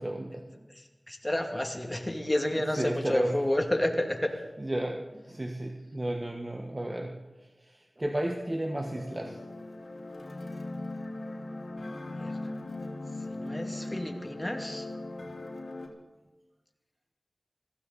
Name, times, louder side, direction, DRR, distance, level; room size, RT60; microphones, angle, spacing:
voice 1, 0.0-0.7 2.7-3.4 4.6-7.2 7.6-9.4 15.2-15.3, right 1 dB, 30° right, 3 dB, 1.3 m, -33 dB
voice 2, 0.8-4.3 12.2-12.3 13.3-14.9, left 1 dB, 15° left, 3 dB, 2.4 m, -30 dB
sound 1, 8.3-15.9, left 2 dB, 70° left, 2.9 m, -39 dB
21.0 x 15.5 x 4.1 m, 1.2 s
wide cardioid pair, 45°, 0 cm